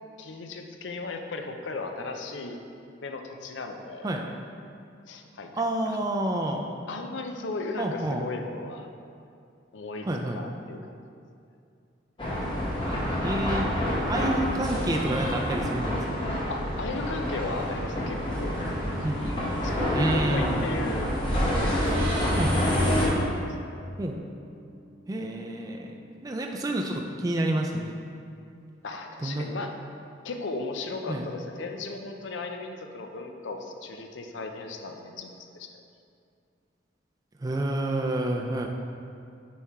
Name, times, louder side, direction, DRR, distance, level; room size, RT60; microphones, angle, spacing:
voice 1, 0.2-2.6 3.0-4.1 5.1-5.5 5.9-6.0 6.9-8.9 9.7-10.1 10.3-10.9 16.5-18.6 19.0-21.1 21.4-21.9 23.2-23.5 28.8-29.8 30.2-35.8, left 3 dB, 75° left, 4 dB, 0.5 m, -36 dB
voice 2, 5.6-6.6 7.8-8.3 10.1-10.4 12.9-13.7 14.1-16.0 19.0-19.3 19.9-20.8 22.4-22.7 24.0-24.2 25.1-28.2 29.2-29.5 31.1-31.3 37.4-38.7, right 1 dB, 20° right, 1 dB, 0.3 m, -29 dB
sound 1, 12.2-23.1, equal, 25° left, 1.2 m, -27 dB
sound 2, 21.9-25.3, right 1 dB, 90° right, 1.2 m, -40 dB
5.5 x 4.3 x 4.6 m, 2.4 s
head